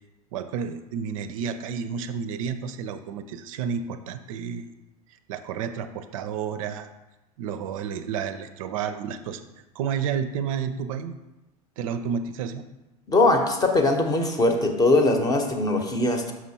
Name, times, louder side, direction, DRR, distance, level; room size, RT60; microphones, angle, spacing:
voice 1, 0.3-4.7 5.1-6.9 7.4-9.5 9.7-11.1 11.8-12.6, right 7 dB, 60° right, 9 dB, 0.4 m, -31 dB
voice 2, 13.1-16.3, left 2 dB, 20° left, 5 dB, 0.8 m, -21 dB
6.0 x 5.8 x 2.8 m, 1.0 s
figure-of-eight pair, 85°, 20 cm